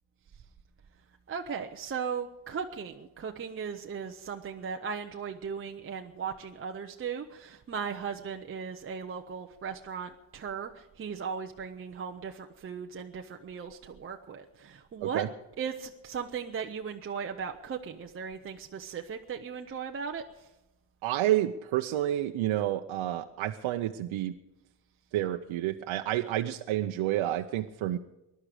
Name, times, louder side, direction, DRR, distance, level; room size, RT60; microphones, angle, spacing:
voice 1, 1.3-10.7 11.0-15.3 15.6-20.2, right 6 dB, 25° right, 3 dB, 0.7 m, -37 dB
voice 2, 21.0-24.3 25.1-28.0, right 13 dB, 75° right, 5 dB, 0.8 m, -29 dB
21.0 x 11.5 x 5.0 m, 0.98 s
cardioid pair, 175°, 48 cm